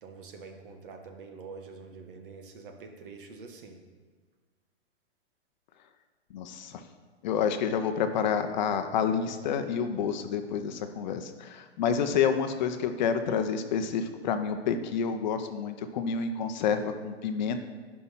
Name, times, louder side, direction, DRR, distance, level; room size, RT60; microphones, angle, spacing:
voice 1, 0.0-3.8 12.1-12.2, right 4 dB, 50° right, 4 dB, 1.7 m, -46 dB
voice 2, 6.3-6.8 7.2-17.6, left 7 dB, 40° left, 8 dB, 0.8 m, -29 dB
10.5 x 5.7 x 5.6 m, 1.4 s
hypercardioid pair, 150°, 33 cm